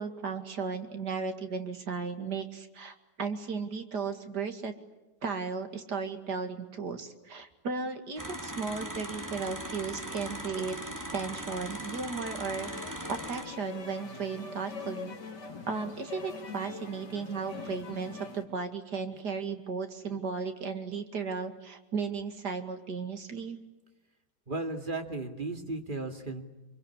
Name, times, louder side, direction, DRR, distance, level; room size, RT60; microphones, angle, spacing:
voice 1, 0.0-4.7 5.2-12.7 13.1-15.2 15.7-23.6, right 5 dB, 70° right, 6 dB, 2.7 m, -35 dB
sound 1, 8.2-13.4, right 1 dB, 10° right, 2.7 m, -39 dB
sound 2, 12.5-18.4, left 5 dB, 70° left, 3.2 m, -43 dB
voice 2, 24.5-26.4, right 2 dB, 30° right, 5 dB, 2.4 m, -35 dB
25.5 x 24.0 x 9.8 m, 1.0 s
omnidirectional pair, 1.9 m